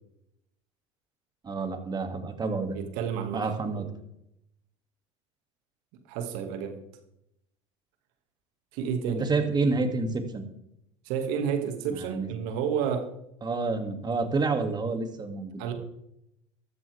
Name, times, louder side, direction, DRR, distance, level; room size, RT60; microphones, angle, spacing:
voice 1, 1.4-2.8 3.3-3.9 9.1-10.4 11.9-12.3 13.4-15.5, right 3 dB, 25° right, 5 dB, 2.7 m, -28 dB
voice 2, 2.7-3.9 6.1-6.8 8.7-9.3 11.1-13.1 15.6-15.7, right 7 dB, 65° right, 6 dB, 2.3 m, -30 dB
14.0 x 13.5 x 3.6 m, 0.78 s
hypercardioid pair, 75°, 16 cm